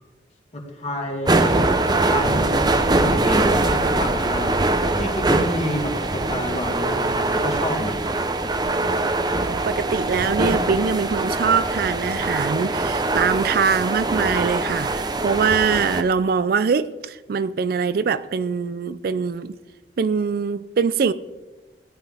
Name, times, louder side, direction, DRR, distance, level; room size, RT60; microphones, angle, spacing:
voice 1, 0.5-1.5 1.9-2.7 3.0-4.6 5.0-8.0, left 1 dB, 35° left, 2.3 m, -29 dB
sound 1, 1.3-16.0, right 2 dB, 25° right, 0.7 m, -22 dB
voice 2, 9.4-19.5 20.0-21.1, right 5 dB, 55° right, 0.4 m, -23 dB
16.5 x 10.5 x 3.4 m
head